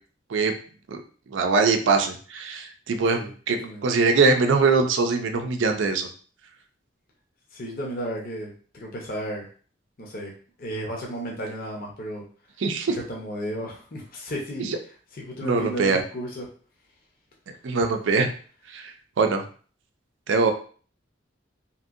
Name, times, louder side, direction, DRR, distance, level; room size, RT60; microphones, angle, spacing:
voice 1, 1.3-6.1 12.6-13.0 14.6-14.8 15.4-16.0 17.6-18.3 18.7-19.4 20.3-20.5, right 4 dB, 80° right, 5 dB, 0.4 m, -22 dB
voice 2, 3.1-3.8 7.5-9.5 10.0-10.3 10.6-12.2 12.9-14.7 15.1-16.5, equal, 50° left, -2 dB, 0.7 m, -33 dB
2.9 x 2.7 x 2.4 m, 0.42 s
head